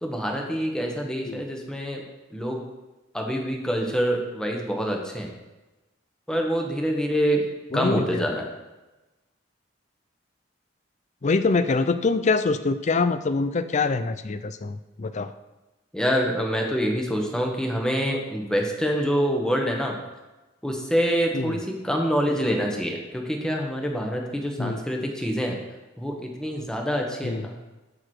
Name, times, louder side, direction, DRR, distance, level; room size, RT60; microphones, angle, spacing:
voice 1, 0.0-2.0 2.3-2.6 3.1-5.3 6.3-7.4 7.7-8.4 15.9-20.0 20.6-25.6 26.0-27.6, equal, 5° left, 1 dB, 1.2 m, -26 dB
voice 2, 7.7-8.2 11.2-15.3 21.3-21.6 24.6-24.8 27.2-27.4, left 4 dB, 40° left, 12 dB, 0.5 m, -24 dB
12.5 x 4.9 x 4.6 m, 1.1 s
head